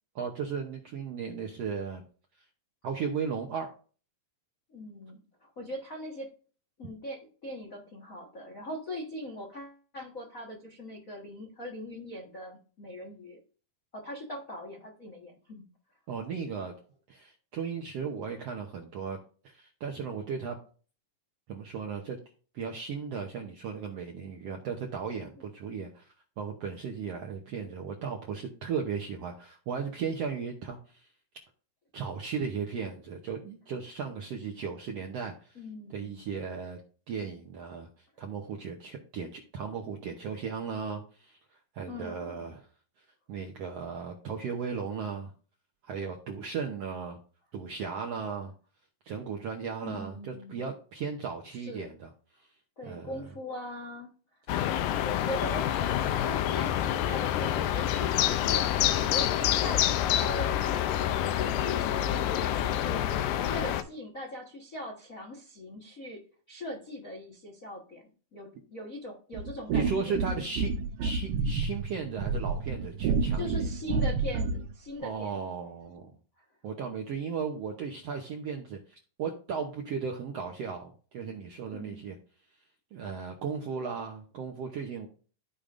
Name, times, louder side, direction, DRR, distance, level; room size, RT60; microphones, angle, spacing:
voice 1, 0.1-2.0 2.8-3.7 16.1-16.7 17.1-19.2 19.4-20.6 21.5-22.2 22.5-26.1 26.4-31.1 31.9-35.6 35.9-36.8 37.1-41.4 41.7-42.7 43.3-45.3 45.8-47.2 47.5-48.5 49.0-52.1 52.9-53.1 69.7-70.7 71.0-73.7 75.0-76.1 76.6-82.2 82.9-85.1, right 6 dB, 70° right, 1 dB, 1.5 m, -36 dB
voice 2, 4.7-6.3 6.8-13.4 13.9-15.6 25.3-25.4 35.5-36.3 41.9-42.5 49.8-50.7 51.5-51.9 52.8-54.1 55.0-60.8 61.4-63.0 63.5-66.2 66.5-68.0 68.3-70.2 73.4-75.5 76.4-76.5 81.7-82.1, left 1 dB, 55° left, 0 dB, 0.9 m, -41 dB
sound 1, 54.5-63.8, left 11 dB, 80° left, 2.1 m, -27 dB
sound 2, 69.3-74.7, right 4 dB, 90° right, 2.6 m, -30 dB
14.5 x 5.1 x 2.5 m, 0.39 s
omnidirectional pair, 4.0 m